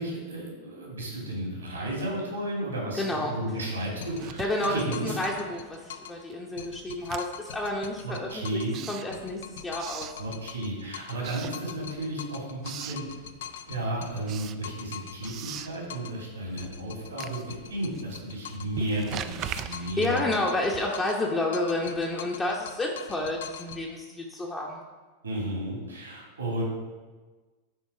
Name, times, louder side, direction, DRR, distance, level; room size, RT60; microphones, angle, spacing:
voice 1, 0.0-5.2 8.0-8.8 10.2-13.0 13.7-17.4 17.7-20.2 25.2-26.6, right 1 dB, 80° right, -2 dB, 2.6 m, -33 dB
voice 2, 3.0-3.3 4.4-8.6 8.9-10.2 19.6-24.8, left 2 dB, 15° left, -1 dB, 0.9 m, -30 dB
sound 1, 4.0-6.2 6.6-8.8 9.1-11.3 11.5-16.2 16.6-18.8 19.1-21.3 21.5-23.8, left 8 dB, 60° left, 0.5 m, -43 dB
Writing, 4.1-5.7 6.0-10.8 11.2-12.1 12.4-13.1 13.5-21.2, right 10 dB, 35° right, 0.4 m, -42 dB
11.0 x 3.9 x 5.0 m, 1.3 s
figure-of-eight pair, 90°, 0 cm